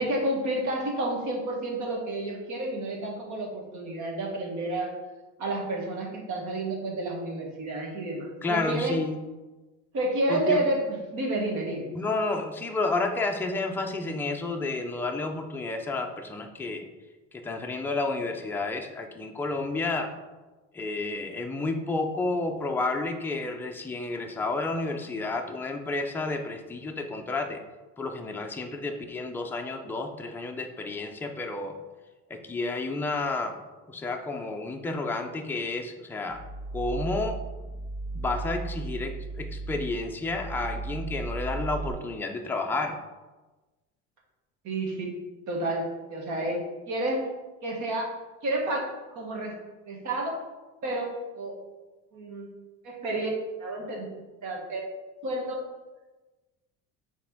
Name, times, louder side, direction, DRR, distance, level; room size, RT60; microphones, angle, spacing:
voice 1, 0.0-4.9 5.4-8.9 9.9-11.9 44.6-45.1 45.5-45.8 46.1-46.6 46.9-47.3 47.6-48.0 48.4-48.8 49.1-49.5 49.8-50.3 50.8-51.1 51.3-51.6 52.1-52.5 52.8-53.3 53.6-54.1 54.4-54.8 55.2-55.6, right 1 dB, 55° right, -1 dB, 1.7 m, -30 dB
voice 2, 8.4-9.1 10.3-10.6 11.9-16.9 17.3-20.1 20.7-27.6 28.0-31.8 32.3-33.6 33.9-36.4 36.7-37.4 38.1-43.0, left 3 dB, 5° left, 3 dB, 0.4 m, -31 dB
sound 1, 36.3-41.9, right 3 dB, 25° left, 0.8 m, -35 dB
6.2 x 3.5 x 4.4 m, 1.2 s
cardioid pair, 140°, 35 cm